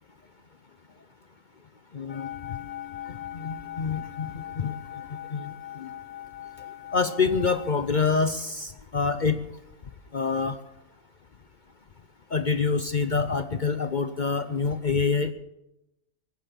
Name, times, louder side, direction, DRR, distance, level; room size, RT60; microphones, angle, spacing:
voice 1, 1.9-2.6 3.1-5.9 6.9-9.4 10.1-10.6 12.3-15.3, left 5 dB, 45° left, 10 dB, 0.6 m, -27 dB
sound 1, 2.1-7.9, left 12 dB, 85° left, 1.5 m, -40 dB
18.5 x 10.0 x 7.0 m, 0.92 s
omnidirectional pair, 1.5 m